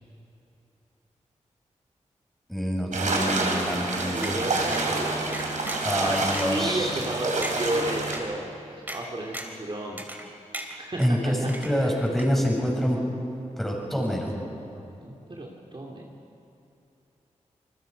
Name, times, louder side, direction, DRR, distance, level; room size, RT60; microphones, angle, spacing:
voice 1, 2.5-4.4 5.8-6.9 11.0-13.0 13.6-14.3, equal, ahead, -1 dB, 6.8 m, -26 dB
sound 1, 2.9-8.2, right 2 dB, 80° right, 3.3 m, -28 dB
voice 2, 3.7-5.4 5.9-10.0 10.8-11.2 11.7-12.0 14.7-16.1, right 1 dB, 40° right, -2 dB, 2.6 m, -33 dB
sound 2, 4.2-4.4 4.7-4.9 5.3-5.9 6.3-6.4 7.0-7.1 7.4-7.6 8.1-8.2 8.9-9.0 9.3-9.6 10.0-10.3 10.5-11.1 11.5-11.9 12.2-12.3, right 1 dB, 15° right, 3.2 m, -36 dB
27.5 x 20.0 x 5.2 m, 2.7 s
cardioid pair, 50°, 13 cm